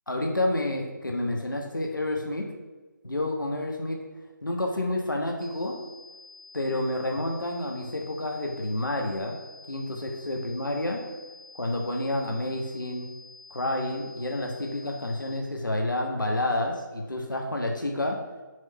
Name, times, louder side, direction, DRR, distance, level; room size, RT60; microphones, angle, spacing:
voice 1, 0.1-2.5 3.0-4.0 4.4-5.8 6.5-9.4 9.7-11.0 11.5-13.1 13.5-18.2, left 1 dB, 75° left, 2 dB, 1.2 m, -29 dB
sound 1, 5.4-15.4, left 3 dB, ahead, 0.6 m, -50 dB
6.5 x 3.7 x 5.7 m, 1.2 s
figure-of-eight pair, 155°, 11 cm